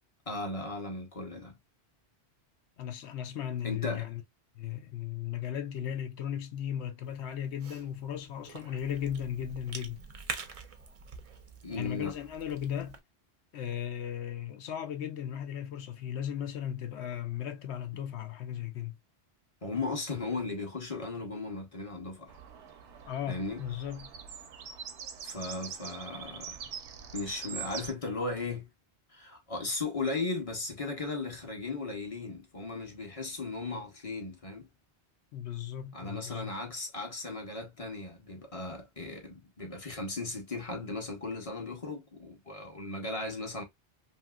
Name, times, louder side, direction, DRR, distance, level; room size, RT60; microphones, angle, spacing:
voice 1, 0.3-1.6 3.6-4.1 11.6-12.1 19.6-22.3 23.3-23.6 25.2-26.7 27.1-28.7 29.1-34.7 35.9-43.6, left 3 dB, 35° left, 0.8 m, -36 dB
voice 2, 2.8-4.2 4.5-10.0 11.7-13.0 13.5-18.9 23.0-24.1 35.3-36.5, left 10 dB, 80° left, 0.9 m, -36 dB
Cough / Chewing mastication, 7.0-13.0, right 5 dB, 50° right, 0.4 m, -45 dB
sound 1, 22.3-27.9, right 7 dB, 80° right, 0.9 m, -43 dB
2.9 x 2.8 x 2.3 m
omnidirectional pair, 1.1 m